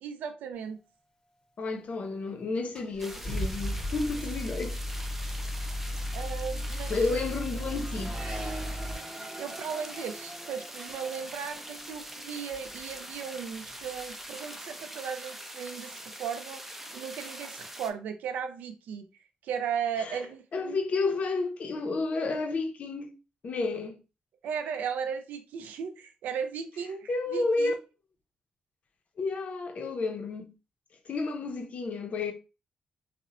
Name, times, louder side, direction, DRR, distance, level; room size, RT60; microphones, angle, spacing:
voice 1, 0.0-0.8 6.1-7.3 9.4-19.1 19.4-20.8 24.4-27.7, right 7 dB, 85° right, 0.3 m, -36 dB
voice 2, 1.6-4.8 6.9-8.2 20.0-20.2 20.5-23.1 23.4-24.0 27.1-27.7 29.2-30.5 31.1-32.3, left 3 dB, 55° left, 0.5 m, -31 dB
Car / Engine starting, 2.0-2.1 2.7-8.9, equal, 25° left, 0.8 m, -35 dB
sound 1, 3.0-17.9, right 1 dB, 10° right, 0.4 m, -43 dB
Accelerating revving vroom, 5.3-5.4 5.6-13.2 13.5-14.1, right 1 dB, 25° right, 0.8 m, -46 dB
2.8 x 2.0 x 2.4 m
cardioid pair, 65°, 3 cm